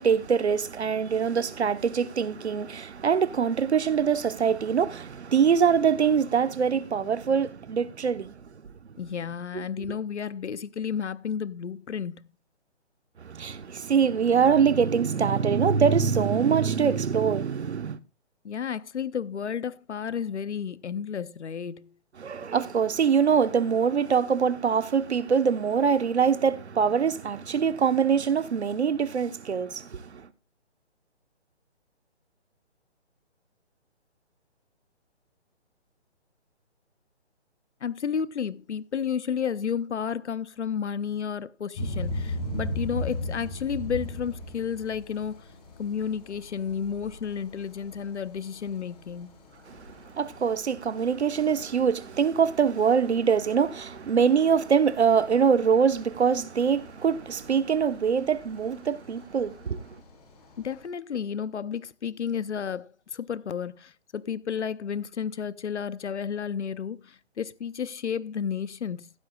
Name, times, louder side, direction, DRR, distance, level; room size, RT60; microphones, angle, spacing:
voice 1, 0.0-8.3 9.5-9.6 13.2-18.0 22.2-30.3 49.7-59.8, right 6 dB, 70° right, 1.2 m, -24 dB
voice 2, 9.0-12.3 18.4-21.9 37.8-45.5 45.8-49.3 60.6-69.1, left 7 dB, 80° left, 0.8 m, -32 dB
sound 1, 41.7-60.8, left 1 dB, 35° left, 6.2 m, -40 dB
15.0 x 11.5 x 2.4 m
hypercardioid pair, 155°, 34 cm